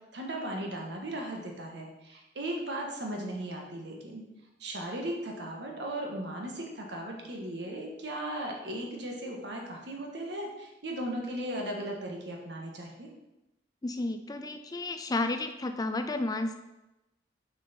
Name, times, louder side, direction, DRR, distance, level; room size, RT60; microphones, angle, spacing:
voice 1, 0.1-4.2 4.6-13.1, right 1 dB, 70° right, 0 dB, 1.5 m, -37 dB
voice 2, 13.8-16.5, left 2 dB, 20° left, 7 dB, 0.4 m, -32 dB
6.2 x 5.9 x 4.3 m, 0.96 s
head